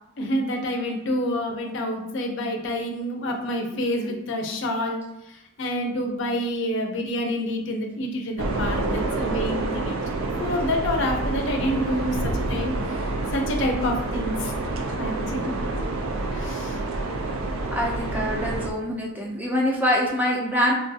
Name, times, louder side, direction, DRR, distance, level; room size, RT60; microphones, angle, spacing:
voice 1, 0.2-12.7 13.3-14.6 15.0-15.5 16.3-16.8, left 1 dB, 60° left, 3 dB, 0.5 m, -28 dB
sound 1, 8.4-18.7, right 2 dB, 75° right, 0.4 m, -28 dB
voice 2, 17.7-20.7, equal, 10° right, -2 dB, 0.4 m, -24 dB
3.3 x 2.3 x 2.6 m, 0.89 s
head